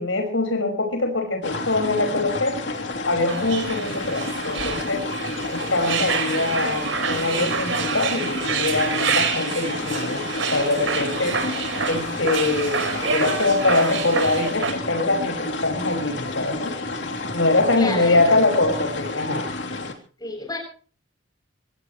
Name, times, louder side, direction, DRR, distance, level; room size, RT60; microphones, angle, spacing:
voice 1, 0.0-2.6 3.0-5.1 5.5-10.2 10.5-11.4 11.8-16.7 17.3-19.5, left 2 dB, 80° left, 4 dB, 5.7 m, -23 dB
sound 1, 1.4-19.9, left 2 dB, 60° left, 3.3 m, -30 dB
sound 2, 3.3-14.7, right 5 dB, 75° right, 4.8 m, -27 dB
voice 2, 17.8-18.2 20.2-20.6, left 2 dB, 20° left, 3 dB, 7.7 m, -29 dB
25.0 x 17.5 x 3.2 m, 0.41 s
head